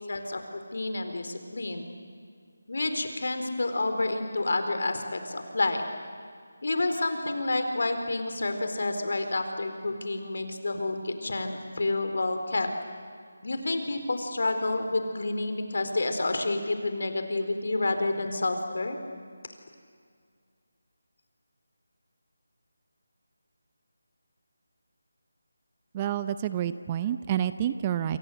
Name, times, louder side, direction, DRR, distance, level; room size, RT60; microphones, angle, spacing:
voice 1, 0.0-1.9 2.7-5.9 6.6-12.7 13.4-19.0, left 2 dB, 65° left, 7 dB, 4.2 m, -29 dB
voice 2, 25.9-28.2, right 10 dB, 20° right, 13 dB, 0.6 m, -28 dB
27.5 x 26.5 x 8.1 m, 2.1 s
figure-of-eight pair, 165°, 0 cm